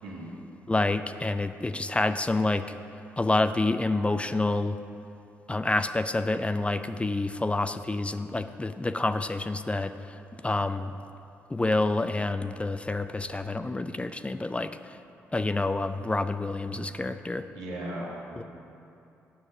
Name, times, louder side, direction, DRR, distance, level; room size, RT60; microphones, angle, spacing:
voice 1, 0.0-0.3 17.5-18.4, right 1 dB, 85° right, -6 dB, 1.9 m, -37 dB
voice 2, 0.7-2.7 3.2-4.8 5.5-9.9 10.4-11.0 11.5-14.8 15.3-17.5 18.4-18.5, left 2 dB, 20° left, 10 dB, 0.4 m, -28 dB
7.5 x 6.3 x 6.5 m, 2.7 s
hypercardioid pair, 45°, 6 cm